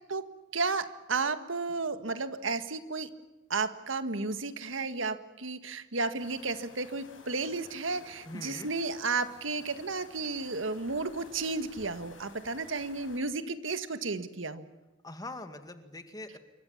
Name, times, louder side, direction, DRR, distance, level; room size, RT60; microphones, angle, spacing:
voice 1, 0.5-3.1 3.5-14.6, right 3 dB, 85° right, 10 dB, 1.7 m, -33 dB
sound 1, 6.2-13.2, left 3 dB, 85° left, 5.7 m, -54 dB
voice 2, 8.3-8.7 15.0-16.4, left 2 dB, 20° left, 8 dB, 2.1 m, -42 dB
27.5 x 24.5 x 7.3 m, 1.0 s
head